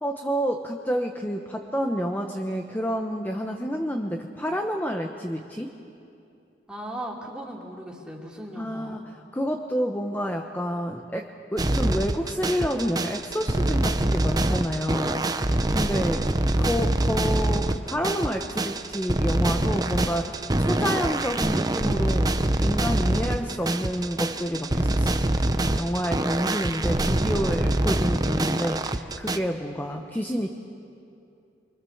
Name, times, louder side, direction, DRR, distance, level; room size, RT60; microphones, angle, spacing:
voice 1, 0.0-5.7 8.6-15.2 15.7-16.2 16.6-22.3 22.6-25.3 25.7-30.5, equal, 10° left, 3 dB, 0.9 m, -29 dB
voice 2, 6.7-9.0, right 1 dB, 5° right, -2 dB, 3.0 m, -38 dB
sound 1, 11.6-29.4, right 1 dB, 20° right, 0.8 m, -25 dB
24.5 x 23.5 x 7.2 m, 2.6 s
head